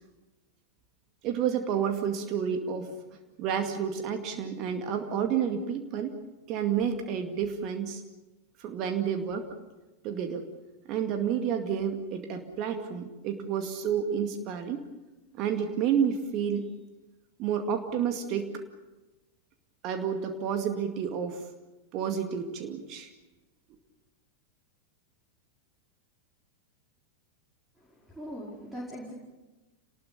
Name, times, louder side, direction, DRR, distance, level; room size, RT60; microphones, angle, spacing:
voice 1, 1.2-2.9 3.4-6.1 6.5-8.0 8.6-9.5 10.0-10.4 10.9-14.8 15.3-16.7 17.4-18.6 19.8-21.5 21.9-23.1, right 8 dB, 40° right, 5 dB, 2.2 m, -30 dB
voice 2, 27.8-29.1, equal, 5° right, -3 dB, 5.1 m, -41 dB
28.0 x 20.0 x 7.0 m, 1.1 s
figure-of-eight pair, 90°, 0 cm